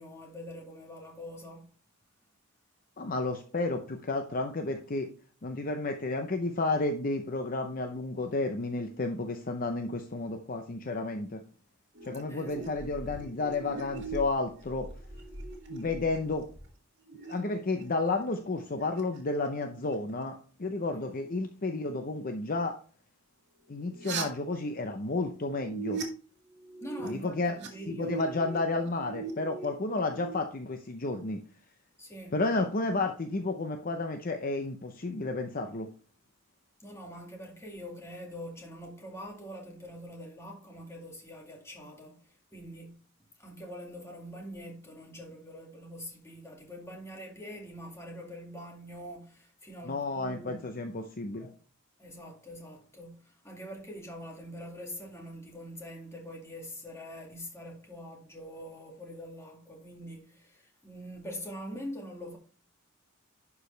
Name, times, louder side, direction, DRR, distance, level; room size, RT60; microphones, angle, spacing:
voice 1, 0.0-1.7 12.3-13.1 26.8-28.2 32.0-32.4 36.8-43.0 43.4-50.8 51.4-51.5 52.0-62.4, equal, 15° left, 2.1 m, -44 dB
voice 2, 3.0-5.1 5.4-11.4 12.0-14.9 15.7-16.5 17.3-22.8 23.7-26.0 27.0-27.6 27.9-31.4 32.3-35.9 49.8-51.5, left 3 dB, 40° left, 0.7 m, -32 dB
sound 1, 11.9-16.7 17.1-17.8 18.1-20.3 23.7-24.2 25.4-26.0 26.5-27.1 27.4-30.4, right 4 dB, 55° right, 2.1 m, -41 dB
11.5 x 4.8 x 3.3 m
head